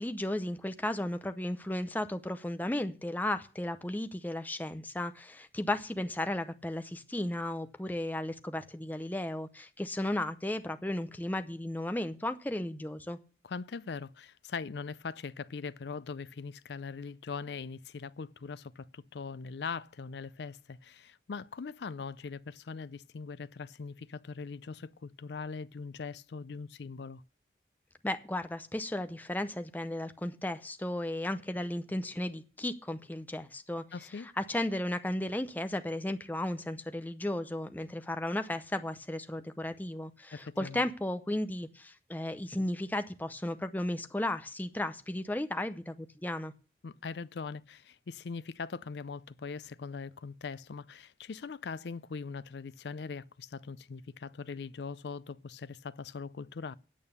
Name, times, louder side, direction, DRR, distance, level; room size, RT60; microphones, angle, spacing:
voice 1, 0.0-13.2 28.0-33.8 34.2-46.5, left 1 dB, 10° left, 0.6 m, -34 dB
voice 2, 13.4-27.2 33.9-34.3 40.3-40.9 46.8-56.7, left 5 dB, 70° left, 0.5 m, -41 dB
8.9 x 8.5 x 6.8 m
head